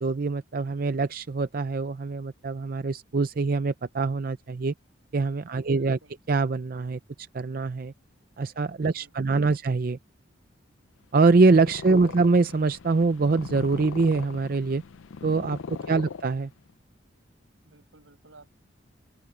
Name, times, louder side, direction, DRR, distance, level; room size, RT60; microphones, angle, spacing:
voice 1, 0.0-4.7 5.1-6.0 6.3-7.9 8.4-10.0 11.1-14.8 15.2-15.6 15.9-16.5, right 3 dB, 45° right, 0.5 m, -24 dB
voice 2, 5.5-6.2 8.9-9.5 15.7-16.1 17.6-18.5, right 2 dB, 85° right, 6.0 m, -56 dB
Purr, 11.0-16.7, left 5 dB, 85° left, 0.5 m, -40 dB
open air
head